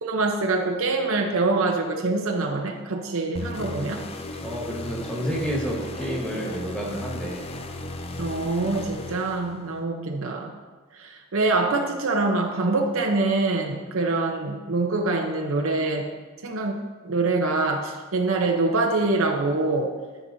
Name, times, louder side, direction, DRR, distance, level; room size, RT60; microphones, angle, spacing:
voice 1, 0.0-4.0 8.2-10.5 10.9-16.0 16.4-19.9, right 3 dB, 65° right, 3 dB, 0.8 m, -25 dB
sound 1, 3.4-9.8, left 2 dB, 25° left, 0.5 m, -36 dB
voice 2, 4.4-7.4, equal, 5° left, -3 dB, 1.7 m, -29 dB
12.5 x 6.0 x 2.7 m, 1.3 s
head